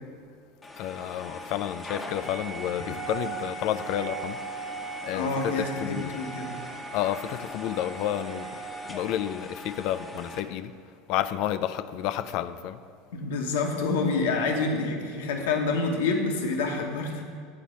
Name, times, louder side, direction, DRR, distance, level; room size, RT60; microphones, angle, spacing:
sound 1, 0.6-10.4, right 2 dB, 15° left, 0.9 m, -38 dB
voice 1, 0.8-4.4 5.0-6.1 6.9-8.6 8.9-10.8 11.1-12.8, left 11 dB, 60° left, 0.3 m, -30 dB
voice 2, 5.1-6.6 13.1-17.2, left 3 dB, 85° left, 1.0 m, -27 dB
8.6 x 4.2 x 6.2 m
supercardioid pair, 100°, 0 cm